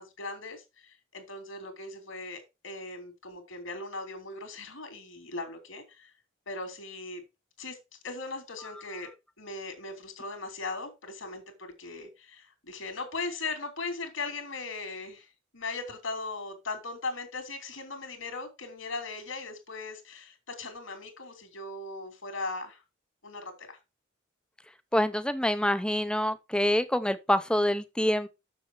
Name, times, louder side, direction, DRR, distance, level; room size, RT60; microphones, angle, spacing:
voice 1, 0.0-6.1 6.5-7.2 7.6-7.8 8.0-9.1 9.4-15.3 15.5-22.8 23.2-23.8, left 3 dB, 75° left, 3.0 m, -38 dB
voice 2, 24.9-28.3, left 1 dB, 5° left, 0.7 m, -26 dB
7.0 x 7.0 x 4.7 m
head